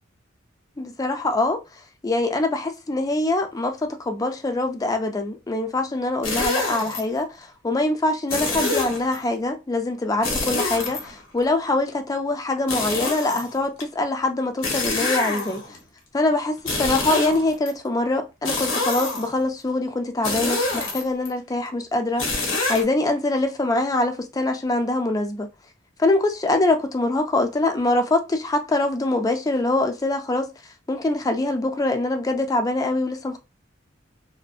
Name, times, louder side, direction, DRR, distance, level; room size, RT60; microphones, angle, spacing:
voice 1, 0.8-1.6 2.0-15.6 16.1-22.3 22.7-25.5 26.0-30.5 30.9-33.4, left 2 dB, 20° left, 0.3 m, -24 dB
sound 1, 6.2-7.0 8.3-9.2 10.2-11.5 12.7-13.8 14.6-15.8 16.6-17.7 18.4-19.4 20.2-21.3 22.2-22.8, left 2 dB, 90° left, 0.8 m, -26 dB
2.5 x 2.1 x 2.3 m
head